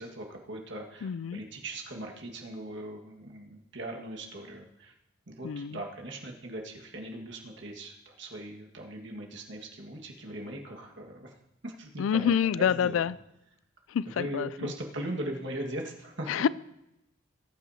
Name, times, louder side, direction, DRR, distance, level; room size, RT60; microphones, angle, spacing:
voice 1, 0.0-4.9 5.3-11.3 11.6-12.3 12.6-13.0 14.1-16.3, right 1 dB, 65° right, 1.7 m, -39 dB
voice 2, 1.0-1.4 5.4-5.8 12.0-13.2 13.9-14.7 16.3-16.5, left 8 dB, 80° left, 0.3 m, -27 dB
19.5 x 9.0 x 2.8 m
head